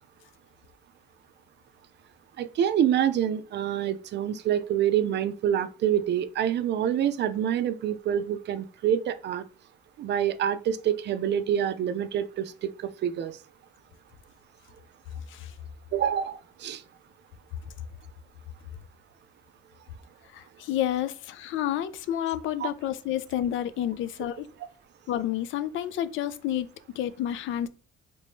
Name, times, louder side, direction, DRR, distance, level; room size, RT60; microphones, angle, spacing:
voice 1, 2.4-9.4 10.0-13.4 15.9-16.8 22.6-22.7, right 10 dB, 60° right, 0.4 m, -27 dB
voice 2, 20.3-24.5 25.1-27.7, left 11 dB, 80° left, 0.4 m, -30 dB
3.3 x 2.6 x 3.5 m
cardioid pair, 90°, 20 cm